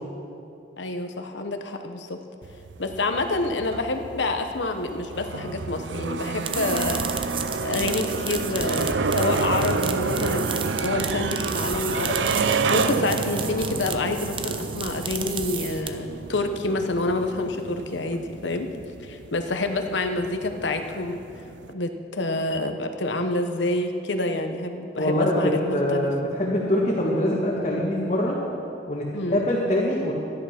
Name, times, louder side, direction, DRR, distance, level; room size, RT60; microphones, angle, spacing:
voice 1, 0.8-2.2 2.8-7.1 7.6-12.4 12.7-18.7 19.0-21.2 21.7-26.1 29.1-29.4, left 2 dB, 85° left, 6 dB, 1.0 m, -28 dB
sound 1, 2.4-21.7, right 4 dB, 85° right, 0.6 m, -29 dB
sound 2, 6.2-16.2, right 7 dB, 30° right, 0.6 m, -33 dB
voice 2, 25.0-28.4 28.9-30.1, left 1 dB, 35° left, -6 dB, 1.7 m, -24 dB
13.5 x 11.0 x 5.9 m, 2.6 s
head